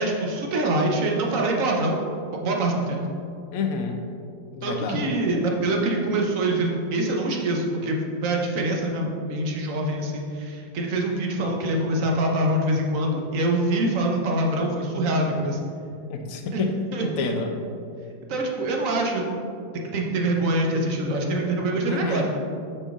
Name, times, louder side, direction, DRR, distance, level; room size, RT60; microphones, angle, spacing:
voice 1, 0.0-2.1 2.4-3.0 4.6-15.6 16.5-17.1 18.3-19.2 19.9-22.4, right 1 dB, 55° right, 0 dB, 1.0 m, -25 dB
voice 2, 3.5-4.0 4.5-5.1 16.1-17.5 21.9-22.3, left 4 dB, 85° left, 4 dB, 0.7 m, -28 dB
5.3 x 5.3 x 3.5 m, 2.4 s
omnidirectional pair, 1.9 m